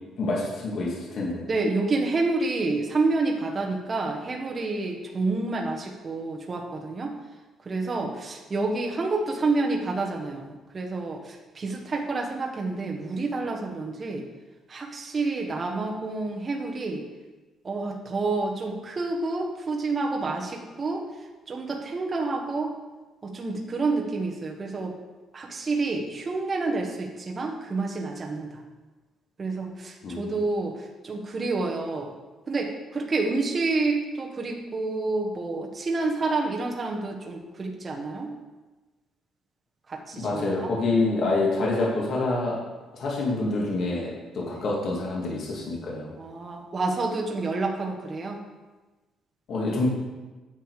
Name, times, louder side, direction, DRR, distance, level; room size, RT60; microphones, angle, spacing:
voice 1, 0.2-1.5 30.0-30.3 40.1-42.6 42.9-46.1 49.5-49.9, left 2 dB, 55° left, -3 dB, 2.4 m, -27 dB
voice 2, 1.5-7.2 7.6-14.2 14.7-17.0 17.6-21.0 21.5-22.7 23.2-24.9 25.3-28.6 29.4-32.1 32.5-38.3 39.9-40.7 44.5-44.7 46.2-48.4, right 3 dB, 25° right, 0 dB, 1.3 m, -29 dB
10.0 x 6.9 x 4.9 m, 1.2 s
cardioid pair, 140°, 0 cm